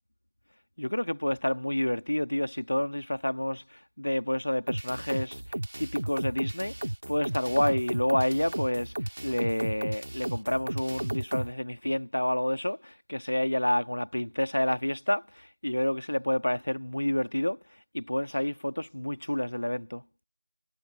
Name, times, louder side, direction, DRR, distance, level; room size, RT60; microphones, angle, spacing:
voice 1, 0.8-20.0, left 1 dB, 90° left, 1.7 m, -29 dB
sound 1, 4.7-11.5, right 1 dB, 70° right, 1.7 m, -34 dB
figure-of-eight pair, 175°, 0 cm